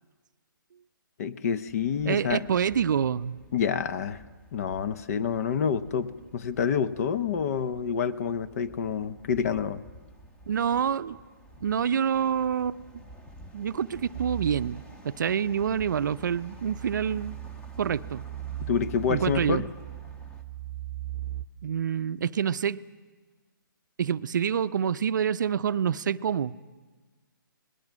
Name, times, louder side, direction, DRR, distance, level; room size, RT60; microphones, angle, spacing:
voice 1, 1.2-2.4 3.5-4.2 4.5-9.8 18.7-19.7, left 7 dB, 45° left, 14 dB, 0.8 m, -28 dB
sound 1, 1.7-20.4, equal, 10° left, 1.0 m, -51 dB
voice 2, 2.0-3.4 10.5-11.2 11.6-13.0 13.5-17.3 17.8-18.2 19.1-19.7 21.6-22.8 24.0-26.5, right 8 dB, 60° right, 14 dB, 0.6 m, -27 dB
sound 2, 14.1-21.4, right 14 dB, 25° right, 0.8 m, -39 dB
25.0 x 20.0 x 6.2 m, 1.3 s
hypercardioid pair, 145°, 12 cm